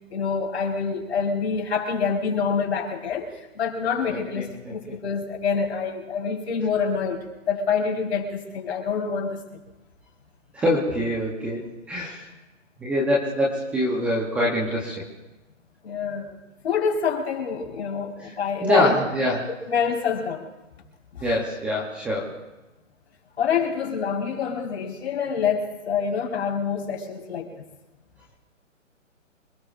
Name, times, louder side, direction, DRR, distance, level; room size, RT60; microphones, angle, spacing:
voice 1, 0.1-7.2 7.4-9.4 15.8-16.4 16.6-19.0 19.7-20.5 21.1-21.3 23.4-27.5, left 6 dB, 55° left, -1 dB, 4.7 m, -26 dB
voice 2, 4.1-4.7 10.5-12.3 12.8-15.0 18.2-18.3 18.6-19.5 21.2-22.3, left 1 dB, 5° right, -4 dB, 0.8 m, -25 dB
27.0 x 19.5 x 2.5 m, 1.0 s
hypercardioid pair, 155°, 39 cm